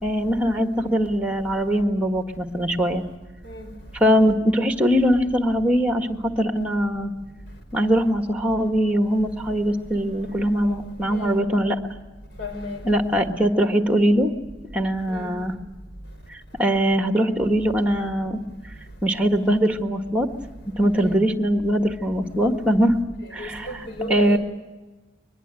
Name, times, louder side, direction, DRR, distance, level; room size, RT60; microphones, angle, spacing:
voice 1, 0.0-3.0 4.0-7.1 7.7-11.8 12.8-14.3 14.7-15.5 16.3-18.4 19.0-20.3 20.8-23.0 23.3-23.7 24.1-24.4, equal, 10° right, 1.6 m, -21 dB
voice 2, 12.4-13.0 15.1-15.3 20.9-21.2 23.2-24.4, left 1 dB, 65° left, 5.7 m, -34 dB
23.0 x 21.5 x 9.0 m
head